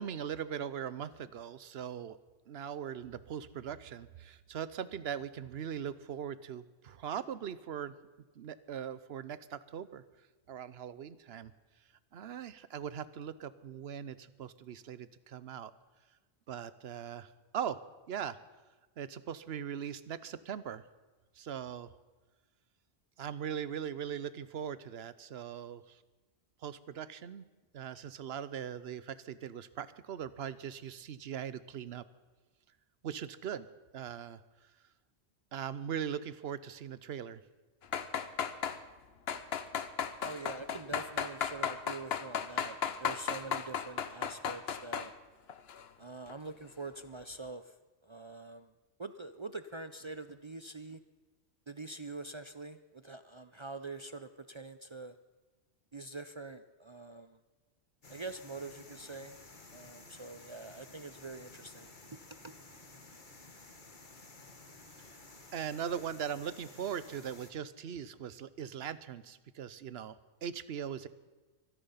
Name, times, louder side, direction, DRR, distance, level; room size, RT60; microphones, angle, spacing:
voice 1, 0.0-2.2 2.5-8.0 8.4-10.0 10.5-11.5 12.1-15.7 16.5-17.8 18.1-18.4 19.0-20.8 21.4-21.9 23.2-26.0 26.6-27.5 27.7-32.0 33.0-33.7 33.9-34.4 35.5-37.4 65.5-71.1, right 8 dB, 70° right, 16 dB, 1.0 m, -40 dB
sound 1, 37.8-38.8 39.3-45.1 45.5-45.8 46.3-46.4, left 7 dB, 70° left, 1.1 m, -35 dB
voice 2, 40.2-45.1 46.0-47.8 48.0-48.7 49.0-51.0 51.7-55.2 55.9-57.4 58.1-59.4 59.7-62.5, right 3 dB, 40° right, 11 dB, 0.4 m, -45 dB
sound 2, 58.0-67.5, left 3 dB, 45° left, 1.8 m, -54 dB
23.5 x 10.5 x 5.7 m, 1.2 s
omnidirectional pair, 1.1 m